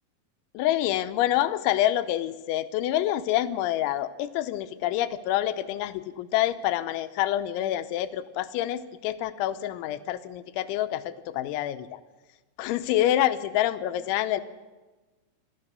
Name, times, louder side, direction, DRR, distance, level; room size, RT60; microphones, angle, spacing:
voice 1, 0.5-12.0 12.6-14.4, left 13 dB, 85° left, 12 dB, 3.2 m, -27 dB
30.0 x 13.5 x 6.7 m, 1.2 s
omnidirectional pair, 5.3 m